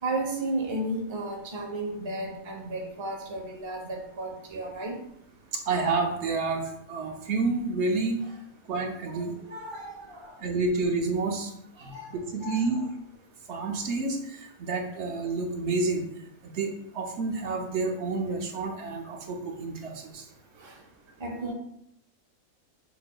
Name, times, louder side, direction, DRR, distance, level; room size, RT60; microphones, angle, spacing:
voice 1, 0.0-5.0 9.1-10.4 11.8-12.1 12.4-12.8 20.6-20.8 21.2-21.5, right 2 dB, 25° right, 0 dB, 0.7 m, -34 dB
voice 2, 5.7-6.6 6.9-8.2 8.7-9.3 10.4-11.5 11.8-12.9 13.5-16.0 16.4-20.2, right 3 dB, 60° right, 2 dB, 0.9 m, -29 dB
6.8 x 3.4 x 2.3 m, 0.77 s
omnidirectional pair, 1.5 m